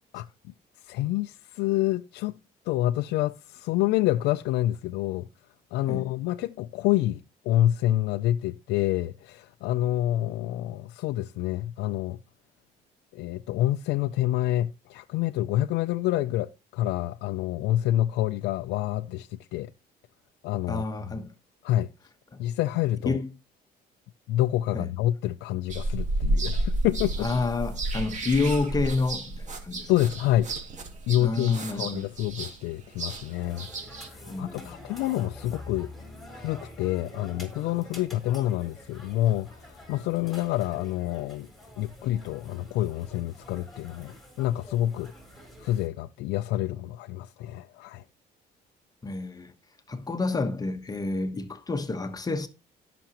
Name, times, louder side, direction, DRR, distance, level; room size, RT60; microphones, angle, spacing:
voice 1, 0.1-2.4 2.7-5.3 5.7-12.2 13.1-19.7 20.4-20.8 21.6-21.9 22.4-23.2 24.3-27.3 29.9-30.5 31.1-33.7 34.0-35.9 36.3-41.5 41.8-45.1 45.6-48.0, left 14 dB, 90° left, 0.5 m, -27 dB
voice 2, 20.7-21.3 22.3-22.4 23.1-23.3 24.7-24.9 27.2-29.9 31.2-32.1 34.3-34.8 49.0-49.5 49.9-52.5, left 3 dB, 25° left, 1.1 m, -29 dB
sound 1, 25.7-34.1, right 2 dB, 45° right, 2.2 m, -31 dB
sound 2, 32.9-45.9, left 1 dB, ahead, 4.2 m, -47 dB
17.0 x 6.1 x 2.9 m
cardioid pair, 110°, 17 cm